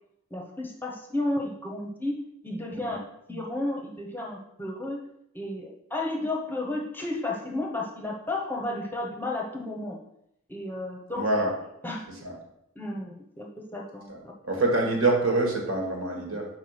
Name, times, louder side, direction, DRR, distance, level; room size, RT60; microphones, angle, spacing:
voice 1, 0.3-2.2 2.4-3.0 3.3-5.0 5.3-10.0 10.5-11.3 11.8-12.0 12.7-14.3, left 2 dB, 10° left, 0 dB, 0.9 m, -32 dB
voice 2, 11.2-11.5 12.2-12.3 14.1-14.2 14.4-16.5, right 2 dB, 65° right, 0 dB, 1.8 m, -25 dB
6.1 x 4.7 x 5.7 m, 0.78 s
head